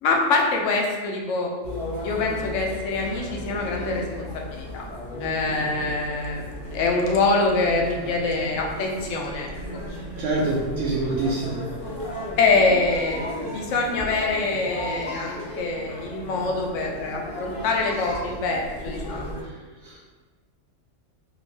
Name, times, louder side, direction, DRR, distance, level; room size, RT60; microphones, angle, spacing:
voice 1, 0.0-1.5 2.0-4.8 5.2-9.5 12.4-13.2 13.5-19.3, left 3 dB, 80° left, 0 dB, 1.0 m, -24 dB
sound 1, 1.6-19.4, left 1 dB, 50° left, 0.9 m, -35 dB
voice 2, 10.2-11.6 19.8-20.0, right 2 dB, 75° right, -5 dB, 1.0 m, -25 dB
2.9 x 2.6 x 3.2 m, 1.3 s
omnidirectional pair, 1.3 m